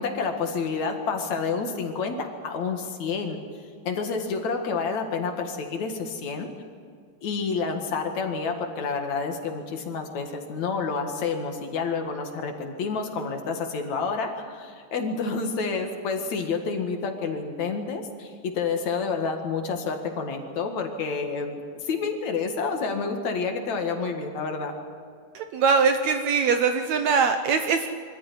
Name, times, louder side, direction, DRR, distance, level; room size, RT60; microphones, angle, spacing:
voice 1, 0.0-3.4 3.9-6.5 7.2-24.7, left 5 dB, 60° left, 5 dB, 2.9 m, -29 dB
voice 2, 25.3-27.9, right 5 dB, 70° right, 7 dB, 1.8 m, -22 dB
24.5 x 14.0 x 9.8 m, 2.2 s
omnidirectional pair, 3.9 m